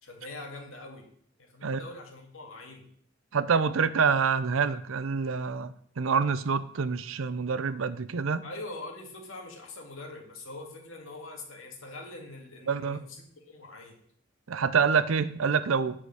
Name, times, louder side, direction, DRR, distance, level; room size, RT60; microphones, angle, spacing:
voice 1, 0.0-1.1 1.4-2.9 8.4-14.0, left 2 dB, 80° left, 1 dB, 1.9 m, -43 dB
voice 2, 3.3-8.4 12.7-13.0 14.5-16.0, right 5 dB, 85° right, 15 dB, 0.6 m, -26 dB
7.6 x 4.9 x 6.4 m, 0.63 s
head